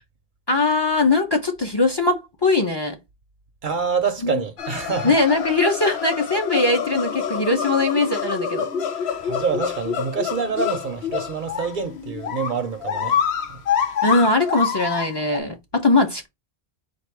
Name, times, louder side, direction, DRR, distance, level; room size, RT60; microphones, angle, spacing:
voice 1, 0.5-2.9 4.2-4.4 5.0-8.7 14.0-16.3, left 3 dB, 30° left, 0.7 m, -20 dB
voice 2, 3.6-5.1 9.2-13.2 13.5-13.6, right 5 dB, 55° right, 0.7 m, -26 dB
sound 1, 4.6-15.4, left 7 dB, 80° left, 1.0 m, -27 dB
4.2 x 2.6 x 4.6 m
omnidirectional pair, 1.1 m